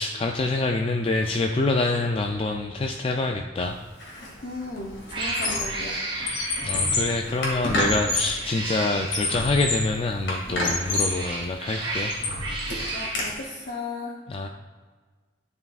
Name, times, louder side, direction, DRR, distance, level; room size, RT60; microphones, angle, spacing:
voice 1, 0.0-3.8 6.6-12.1 14.3-14.5, left 2 dB, 30° left, 3 dB, 0.3 m, -26 dB
Squeak, 4.0-4.3 4.6-5.8 6.2-8.4 8.9-9.9 10.3-11.2 11.7-13.3, left 2 dB, 80° left, 2.1 m, -28 dB
voice 2, 4.4-6.0 12.9-14.2, left 3 dB, 55° left, -3 dB, 0.8 m, -35 dB
Cat, 4.4-4.7 5.1-7.1 8.2-9.3 10.6-13.2, right 2 dB, 30° right, 1.6 m, -33 dB
10.5 x 5.5 x 2.4 m, 1.4 s
head